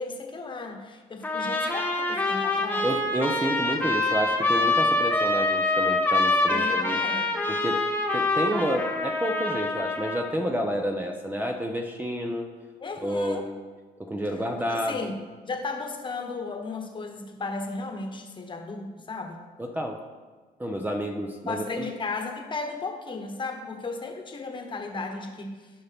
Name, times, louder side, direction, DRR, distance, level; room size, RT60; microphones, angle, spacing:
voice 1, 0.0-2.9 6.5-7.3 12.8-13.5 14.7-15.2 15.4-19.4 21.4-25.7, left 3 dB, 30° left, 3 dB, 1.3 m, -35 dB
Trumpet, 1.2-10.4, left 2 dB, 10° left, 1.3 m, -25 dB
voice 2, 2.8-7.0 7.5-7.8 8.1-12.5 13.0-13.5 14.0-15.1 19.6-20.0 20.6-21.9, equal, 10° right, 2 dB, 0.8 m, -29 dB
15.5 x 5.5 x 3.6 m, 1.4 s
cardioid pair, 110°, 17 cm